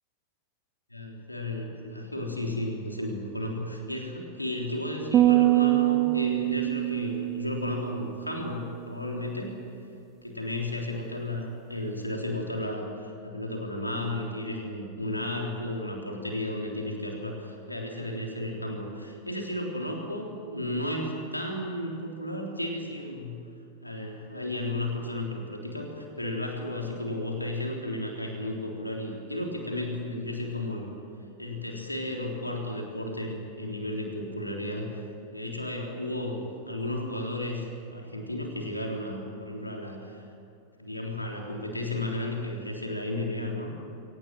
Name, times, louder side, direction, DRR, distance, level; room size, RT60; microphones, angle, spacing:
voice 1, 0.9-9.6 10.2-23.3 23.8-30.9 31.4-35.0 35.3-40.3 40.8-43.7, left 1 dB, 85° left, 1 dB, 3.6 m, -33 dB
sound 1, 5.1-8.5, right 16 dB, 30° right, 0.9 m, -24 dB
23.5 x 18.5 x 9.1 m, 2.6 s
figure-of-eight pair, 90°, 0 cm